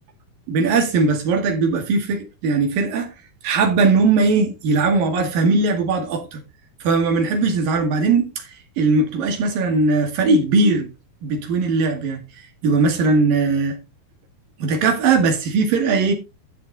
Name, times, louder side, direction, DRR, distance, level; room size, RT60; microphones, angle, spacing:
voice 1, 0.5-3.1 3.4-6.4 6.8-8.3 8.8-10.9 11.2-12.2 12.6-13.8 14.6-16.1, right 3 dB, 65° right, 3.7 m, -19 dB
13.0 x 6.5 x 4.1 m
omnidirectional pair, 4.5 m